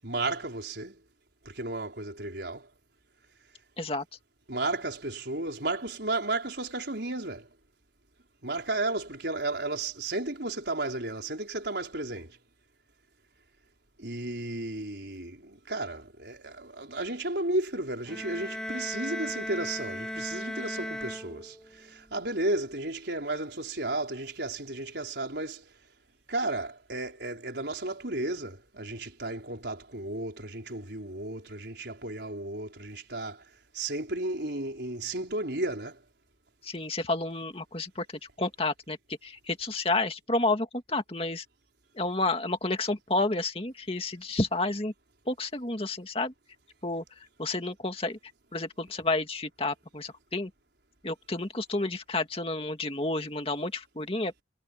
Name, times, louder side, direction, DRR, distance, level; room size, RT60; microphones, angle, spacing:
voice 1, 0.0-1.0 1.4-2.7 4.5-7.5 8.4-12.4 14.0-25.7 26.3-33.4 33.7-36.0, right 2 dB, 70° right, 4.7 m, -33 dB
sound 1, 18.0-21.9, equal, 5° left, 1.7 m, -37 dB
voice 2, 36.6-38.1 38.4-41.4 41.9-44.9 45.3-46.3 46.8-48.2 48.5-50.5 51.0-54.3, left 2 dB, 30° left, 2.2 m, -30 dB
head